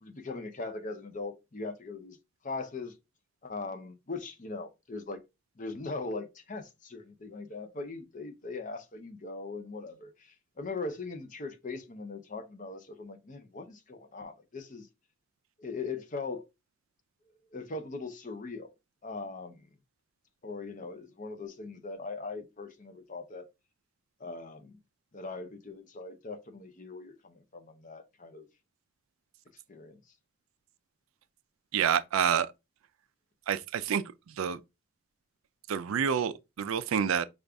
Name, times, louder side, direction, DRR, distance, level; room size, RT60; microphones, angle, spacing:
voice 1, 0.0-2.2 2.4-3.0 3.4-5.2 5.6-14.9 15.6-16.4 17.5-18.7 19.0-19.6 20.4-23.5 24.2-24.8 25.1-28.5 29.7-30.0, left 3 dB, 40° left, 0.7 m, -40 dB
voice 2, 31.7-32.5 33.5-34.6 35.7-37.3, right 7 dB, 85° right, 0.4 m, -28 dB
5.2 x 2.4 x 3.4 m
head